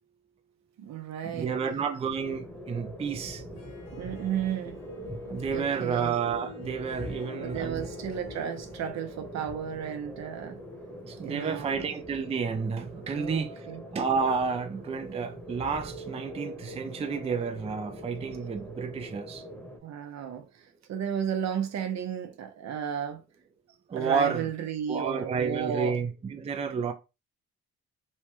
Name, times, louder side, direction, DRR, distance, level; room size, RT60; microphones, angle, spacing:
voice 1, 0.8-1.5 3.9-4.8 5.5-6.1 7.4-10.6 11.2-12.0 13.1-13.8 19.8-23.2 23.9-26.0 26.7-26.9, right 8 dB, 60° right, 0.7 m, -34 dB
voice 2, 1.3-3.4 5.3-7.9 11.1-13.7 13.9-19.4 23.9-24.5 24.9-26.9, right 5 dB, 20° right, 0.4 m, -30 dB
sound 1, 2.2-19.8, equal, 5° left, 1.0 m, -42 dB
Harp, 3.4-12.0, left 5 dB, 55° left, 1.2 m, -51 dB
3.2 x 2.2 x 3.0 m
cardioid pair, 90°, 30 cm